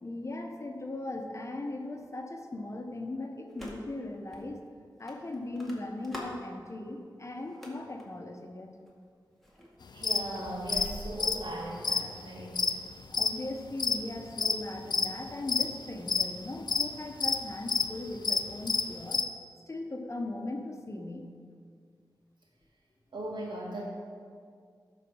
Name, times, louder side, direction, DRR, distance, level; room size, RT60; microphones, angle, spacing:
voice 1, 0.0-4.6 5.0-8.7 13.1-19.3 19.7-21.3, left 2 dB, 40° left, 3 dB, 1.0 m, -38 dB
sound 1, 3.5-4.0 4.3-4.4 5.1-6.4 7.3-8.0 8.8-9.1 9.4-11.6, equal, 5° left, 1.9 m, -45 dB
voice 2, 9.9-12.6 23.1-23.8, right 1 dB, 75° right, -3 dB, 2.2 m, -38 dB
sound 2, 10.0-10.2 10.7-10.9 11.1-13.3 13.7-14.6 14.9-15.1 15.5-16.3 16.7-16.9 17.2-17.9 18.2-19.2, left 5 dB, 65° left, 0.5 m, -28 dB
12.0 x 4.1 x 6.2 m, 2.1 s
wide cardioid pair, 60°, 8 cm